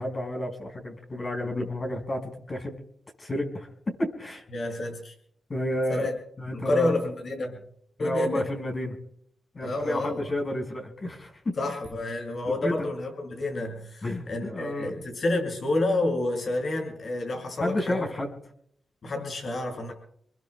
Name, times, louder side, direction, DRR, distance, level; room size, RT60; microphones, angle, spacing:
voice 1, 0.0-2.8 3.2-3.7 4.0-4.4 5.5-6.1 6.4-6.9 8.0-9.0 9.6-11.5 12.6-12.9 14.0-14.9 17.6-18.4, left 1 dB, 40° left, 2 dB, 5.2 m, -31 dB
voice 2, 4.5-5.1 5.9-6.1 6.5-7.6 8.0-8.5 9.6-10.3 11.6-18.1 19.0-19.9, left 2 dB, 60° left, 2 dB, 7.0 m, -29 dB
27.0 x 21.5 x 2.3 m, 0.66 s
cardioid pair, 70°, 0 cm